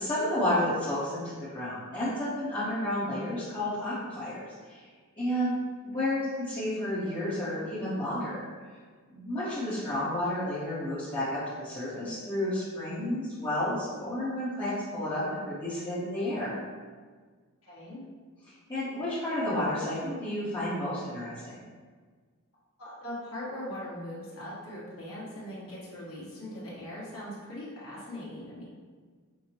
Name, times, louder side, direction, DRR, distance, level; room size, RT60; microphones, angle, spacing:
voice 1, 0.0-4.4 4.6-4.8 5.2-5.6 5.9-8.4 9.1-16.5 18.7-21.6, left 1 dB, 20° left, -12 dB, 0.8 m, -31 dB
voice 2, 17.6-18.0 22.8-28.7, left 1 dB, 65° left, -8 dB, 1.3 m, -40 dB
6.0 x 2.0 x 2.8 m, 1.5 s
head